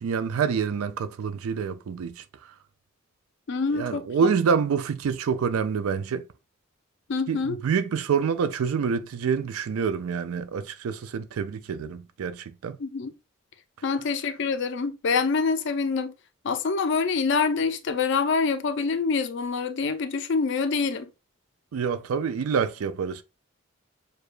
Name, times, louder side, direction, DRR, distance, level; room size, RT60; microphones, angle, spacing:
voice 1, 0.0-2.2 3.7-6.2 7.3-12.8 21.7-23.2, right 6 dB, 80° right, 0.4 m, -27 dB
voice 2, 3.5-4.0 7.1-7.6 12.8-13.1 13.8-16.1 16.4-21.1, left 4 dB, 55° left, 0.4 m, -26 dB
6.6 x 2.3 x 2.4 m
head